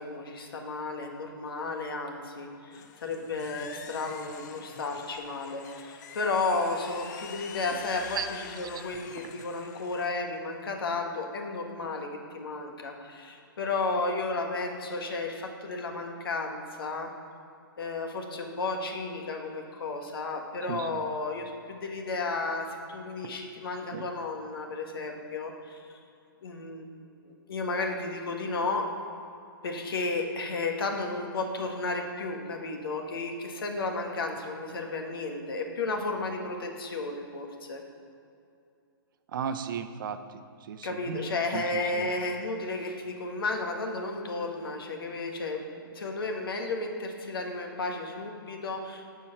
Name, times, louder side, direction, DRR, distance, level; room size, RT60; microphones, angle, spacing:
voice 1, 0.0-17.1 17.8-25.8 26.4-26.9 27.2-28.9 29.6-37.8 40.8-49.1, left 3 dB, 75° left, 2 dB, 1.5 m, -33 dB
sound 1, 2.7-10.1, left 7 dB, 50° left, 0.7 m, -45 dB
voice 2, 20.7-21.0 23.9-24.1 39.3-40.4 40.7-41.2 41.5-42.1, right 7 dB, 60° right, 10 dB, 0.7 m, -35 dB
12.0 x 4.6 x 5.9 m, 2.5 s
hypercardioid pair, 140°, 12 cm